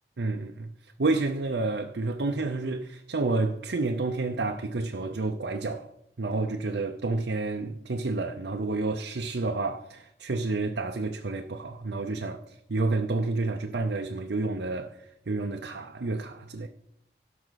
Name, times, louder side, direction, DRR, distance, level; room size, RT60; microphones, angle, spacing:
voice 1, 0.2-0.7 1.0-5.9 6.2-12.4 12.7-14.9 15.3-16.7, right 3 dB, 75° right, 0.6 m, -29 dB
17.0 x 5.9 x 4.0 m
head